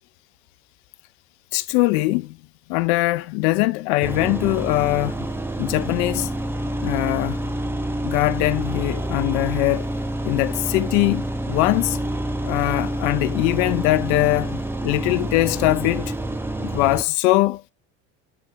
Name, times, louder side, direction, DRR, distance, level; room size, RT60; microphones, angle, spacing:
voice 1, 1.5-2.4 2.7-5.3 5.6-6.3 6.8-7.4 8.0-9.9 10.2-12.0 12.4-16.1 16.6-17.6, left 19 dB, 75° left, 0.7 m, -22 dB
sound 1, 4.0-17.0, right 1 dB, 5° right, 0.8 m, -27 dB
8.9 x 4.3 x 3.5 m
supercardioid pair, 90°, 36 cm